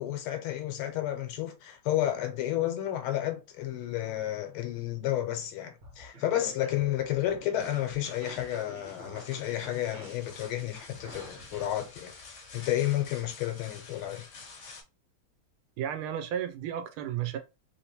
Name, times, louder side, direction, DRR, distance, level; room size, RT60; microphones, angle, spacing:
voice 1, 0.0-12.1 12.5-14.3, left 12 dB, 80° left, 1.5 m, -31 dB
sound 1, 5.7-11.7, right 1 dB, 55° right, 1.3 m, -50 dB
sound 2, 7.6-14.8, left 4 dB, 55° left, 0.9 m, -50 dB
voice 2, 15.8-17.4, right 10 dB, 80° right, 1.5 m, -33 dB
3.6 x 2.9 x 2.8 m
omnidirectional pair, 2.4 m